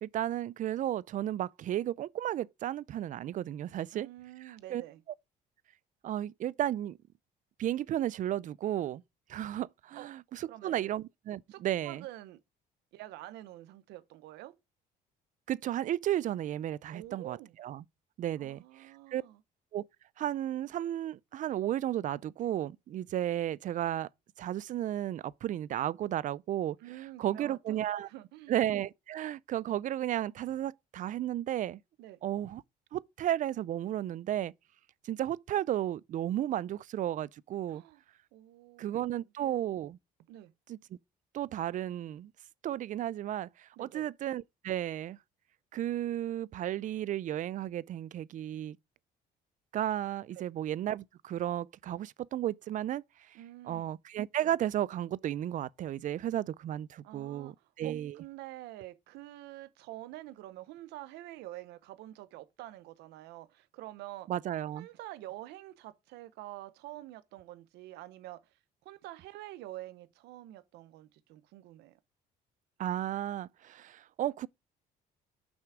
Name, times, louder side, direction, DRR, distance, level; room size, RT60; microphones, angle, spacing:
voice 1, 0.0-4.1 4.4-4.8 6.0-7.0 7.6-9.0 9.3-12.0 15.5-17.8 18.2-19.2 19.7-19.9 20.2-24.1 24.4-26.8 27.2-28.1 28.5-31.8 32.2-32.6 32.9-34.5 35.0-37.8 38.8-40.0 40.7-40.8 41.3-42.3 42.6-45.2 45.7-48.8 49.7-53.0 53.7-58.2 64.3-64.9 72.8-74.5, right 12 dB, 50° right, 0.4 m, -33 dB
voice 2, 3.9-5.0 10.0-10.1 10.5-10.9 11.5-12.4 12.9-14.5 16.9-17.6 18.4-19.4 26.8-28.6 32.0-32.2 37.7-38.0 38.3-39.2 40.3-40.5 43.8-44.1 50.4-50.5 53.3-53.9 57.0-64.3 64.7-68.5 68.8-72.0, right 16 dB, 90° right, 0.9 m, -47 dB
6.2 x 5.9 x 4.9 m
cardioid pair, 110°, 17 cm